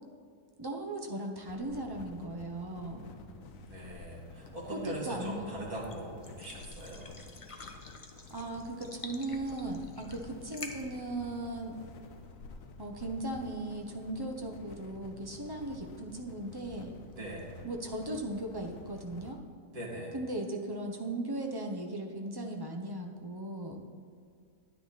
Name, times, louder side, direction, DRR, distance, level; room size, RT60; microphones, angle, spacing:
voice 1, 0.6-3.1 4.7-5.5 8.3-11.8 12.8-17.0 17.6-19.4 20.1-23.8, right 1 dB, 20° right, 2 dB, 0.8 m, -37 dB
sound 1, 1.5-19.4, left 4 dB, 60° left, 1.1 m, -51 dB
voice 2, 2.9-7.1 17.1-17.5 19.7-20.1, right 1 dB, 60° right, -4 dB, 2.9 m, -41 dB
sound 2, 3.8-12.3, left 3 dB, 30° left, 0.6 m, -51 dB
10.5 x 9.9 x 4.2 m, 2.3 s
omnidirectional pair, 1.7 m